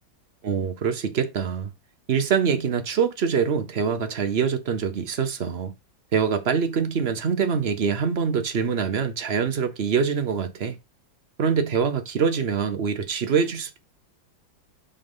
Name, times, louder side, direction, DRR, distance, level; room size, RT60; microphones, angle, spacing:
voice 1, 0.4-1.7 2.1-5.7 6.1-10.8 11.4-13.8, right 6 dB, 50° right, 0.7 m, -24 dB
5.6 x 3.8 x 5.4 m
omnidirectional pair, 2.1 m